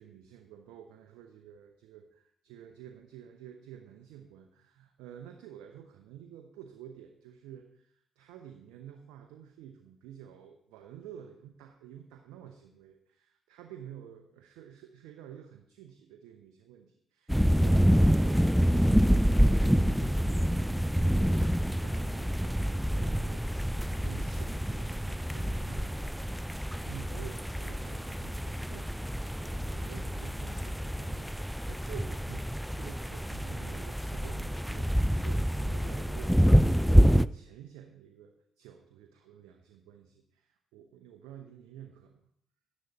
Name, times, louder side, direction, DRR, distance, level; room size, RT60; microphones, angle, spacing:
voice 1, 0.0-21.5 21.8-23.5 23.9-29.1 29.4-42.2, right 10 dB, 85° right, 4 dB, 0.8 m, -50 dB
sound 1, 17.3-37.2, equal, ahead, 0.4 m, -27 dB
10.5 x 9.5 x 4.1 m, 0.70 s
hypercardioid pair, 50°, 0 cm